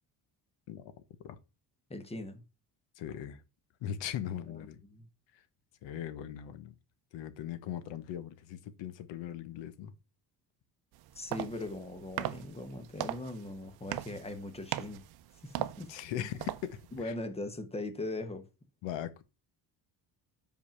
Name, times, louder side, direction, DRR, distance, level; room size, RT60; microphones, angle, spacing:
voice 1, 1.9-2.4 4.5-5.1 11.1-15.0 15.4-15.9 16.2-16.3 16.9-18.5, left 2 dB, 15° left, 1.0 m, -40 dB
voice 2, 3.0-3.4 3.8-4.8 5.8-6.7 7.1-9.9 15.9-17.1 18.8-19.2, left 10 dB, 90° left, 1.1 m, -39 dB
sound 1, 10.9-17.0, right 14 dB, 60° right, 0.7 m, -40 dB
5.2 x 5.1 x 5.7 m
cardioid pair, 150°, 43 cm